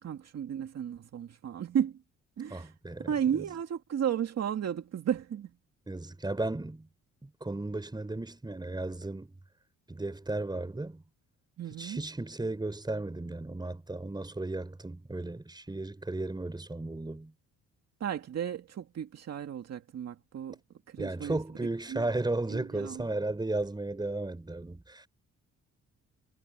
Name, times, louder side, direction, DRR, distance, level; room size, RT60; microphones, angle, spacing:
voice 1, 0.0-2.0 2.4-2.7 3.0-5.5 11.6-12.0 18.0-20.6 20.9-21.4 21.9-22.1 22.5-23.0, right 9 dB, 60° right, 2.2 m, -33 dB
voice 2, 2.5-3.4 5.9-6.9 7.2-9.4 9.9-11.0 11.8-17.3 21.0-25.1, right 2 dB, 15° right, 4.8 m, -35 dB
cardioid pair, 90°, 30 cm